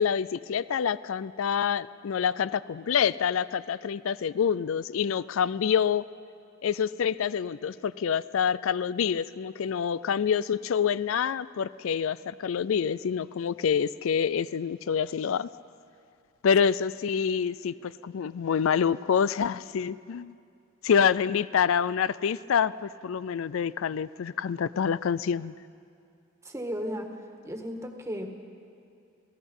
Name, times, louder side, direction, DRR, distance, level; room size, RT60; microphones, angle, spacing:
voice 1, 0.0-6.0 6.6-15.5 16.4-20.3 20.8-25.5, left 7 dB, 80° left, 18 dB, 0.4 m, -27 dB
voice 2, 26.4-27.1 27.4-28.3, equal, 15° right, 4 dB, 1.6 m, -34 dB
28.0 x 18.0 x 5.5 m, 2.5 s
head